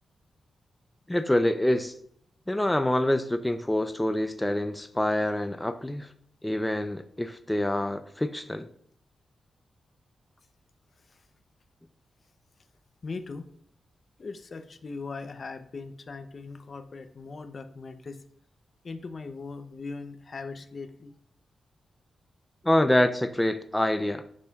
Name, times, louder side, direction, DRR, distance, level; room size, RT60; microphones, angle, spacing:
voice 1, 1.1-1.9 2.5-6.1 6.4-8.7 22.6-24.2, left 1 dB, 10° left, 9 dB, 0.5 m, -26 dB
voice 2, 13.0-13.4 14.2-18.2 18.8-21.1, left 4 dB, 50° left, 9 dB, 0.6 m, -39 dB
8.5 x 6.6 x 2.3 m, 0.64 s
cardioid pair, 60°, 0 cm